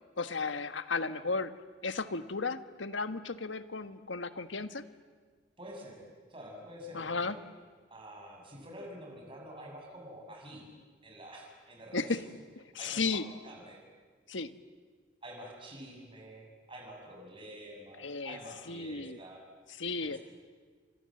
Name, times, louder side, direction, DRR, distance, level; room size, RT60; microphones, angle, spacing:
voice 1, 0.2-1.5 1.8-4.8 6.9-7.4 11.9-12.2 12.7-13.2 14.3-14.5 18.0-18.4 18.7-19.2 19.8-20.2, left 4 dB, 85° left, 11 dB, 1.4 m, -34 dB
voice 2, 5.6-6.0 6.3-7.4 7.9-10.7 11.0-12.2 12.8-13.8 15.2-19.4 20.0-20.2, equal, 30° right, 0 dB, 7.4 m, -48 dB
29.5 x 25.5 x 7.8 m, 1.5 s
head